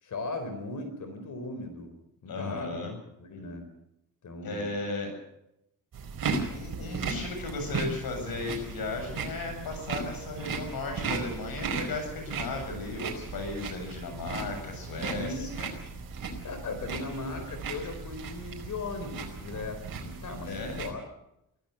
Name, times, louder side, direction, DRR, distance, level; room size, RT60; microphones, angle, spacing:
voice 1, 0.0-2.8 3.2-3.7 4.2-4.7 15.1-15.5 16.4-21.0, left 3 dB, 55° left, 8 dB, 4.2 m, -38 dB
voice 2, 2.3-3.0 4.4-5.1 6.5-15.7 20.4-20.8, left 3 dB, 80° left, 4 dB, 7.6 m, -35 dB
sound 1, 5.9-20.9, right 4 dB, 65° right, 4.9 m, -36 dB
24.5 x 16.5 x 6.8 m, 0.83 s
cardioid pair, 130°, 36 cm